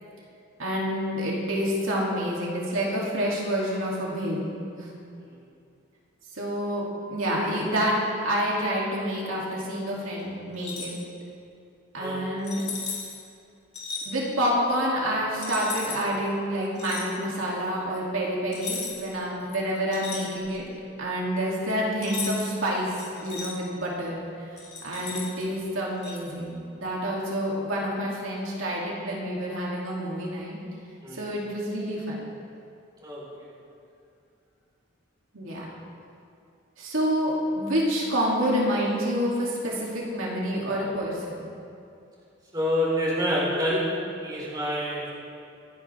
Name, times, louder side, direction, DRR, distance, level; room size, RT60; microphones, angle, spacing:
voice 1, 0.6-4.4 4.8-4.9 6.3-11.0 11.9-12.6 14.1-20.6 21.0-30.6 31.1-32.2 35.3-35.7 36.8-41.5, equal, 80° right, -4 dB, 2.8 m, -28 dB
sound 1, 10.5-11.0 12.4-13.2 13.7-14.1 15.4-16.0 16.7-17.1 18.5-19.1 19.5-20.7 22.0-22.6 23.0-23.5 24.6-25.4 26.0-26.2, left 5 dB, 35° left, 2.9 m, -36 dB
voice 2, 42.5-45.1, equal, 20° right, -6 dB, 4.2 m, -27 dB
25.5 x 10.5 x 3.5 m, 2.5 s
head